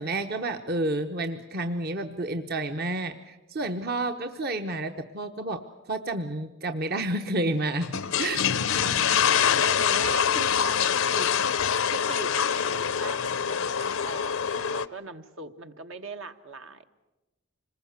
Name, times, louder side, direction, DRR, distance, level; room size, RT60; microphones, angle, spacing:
voice 1, 0.0-5.6 5.9-8.4, right 2 dB, 50° right, 6 dB, 1.0 m, -30 dB
sound 1, 7.8-14.9, left 8 dB, 80° left, 0.7 m, -25 dB
voice 2, 8.8-11.3 11.9-16.8, right 3 dB, 70° right, 7 dB, 1.3 m, -40 dB
26.5 x 20.5 x 8.1 m, 1.1 s
head